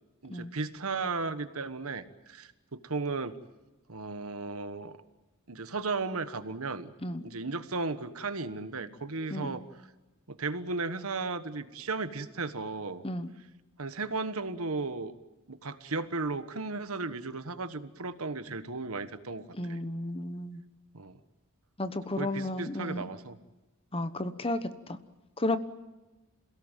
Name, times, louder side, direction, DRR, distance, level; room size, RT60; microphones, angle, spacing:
voice 1, 0.2-3.4 3.9-5.0 5.5-6.9 7.2-9.6 10.3-13.0 13.8-15.1 15.5-19.8 20.9-21.2 22.2-23.4, right 3 dB, 70° right, 11 dB, 1.4 m, -35 dB
voice 2, 19.5-20.6 21.8-23.1 23.9-25.0 25.4-25.6, left 1 dB, 25° left, 11 dB, 1.1 m, -33 dB
28.0 x 17.5 x 9.2 m, 1.1 s
head